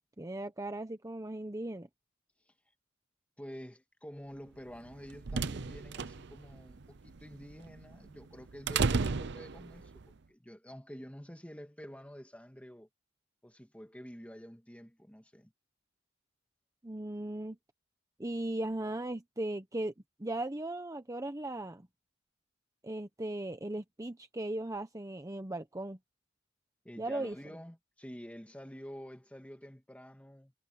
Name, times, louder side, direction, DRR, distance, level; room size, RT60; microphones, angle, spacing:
voice 1, 0.0-1.9 16.8-17.6 18.2-19.9 20.2-21.9 22.8-26.0 27.0-27.4, right 1 dB, 15° right, 0.9 m, -37 dB
voice 2, 3.4-12.9 13.4-15.5 26.8-30.5, equal, 5° left, 1.9 m, -49 dB
sound 1, 4.8-10.0, right 4 dB, 60° right, 0.7 m, -35 dB
head